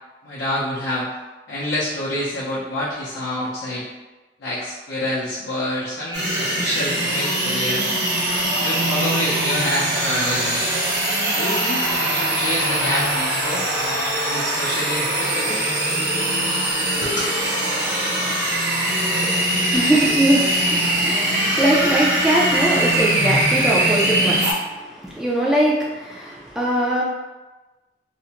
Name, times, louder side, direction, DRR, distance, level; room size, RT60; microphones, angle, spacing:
voice 1, 0.2-1.1 1.5-3.9 4.4-7.9 8.6-10.6 11.3-13.6 14.2-15.7 17.0-17.2, left 1 dB, 80° left, -8 dB, 0.5 m, -27 dB
sound 1, 6.1-24.5, right 1 dB, 85° right, 0.7 m, -22 dB
voice 2, 19.7-27.0, right 1 dB, 5° right, -5 dB, 0.3 m, -21 dB
2.5 x 2.1 x 2.8 m, 1.1 s
head